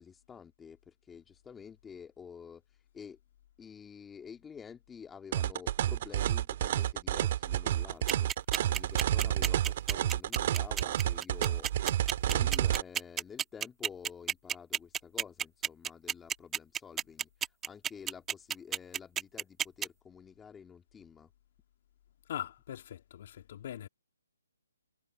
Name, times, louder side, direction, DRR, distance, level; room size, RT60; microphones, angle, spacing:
voice 1, 0.0-2.6 2.9-3.2 3.6-8.3 8.7-11.7 12.3-17.3 17.6-21.3, left 7 dB, 10° left, 2.3 m, -49 dB
sound 1, 5.3-12.8, right 12 dB, 40° right, 1.7 m, -30 dB
sound 2, 8.1-19.9, right 9 dB, 15° right, 1.2 m, -31 dB
voice 2, 22.3-23.9, left 11 dB, 45° left, 2.2 m, -41 dB
hypercardioid pair, 150°, 0 cm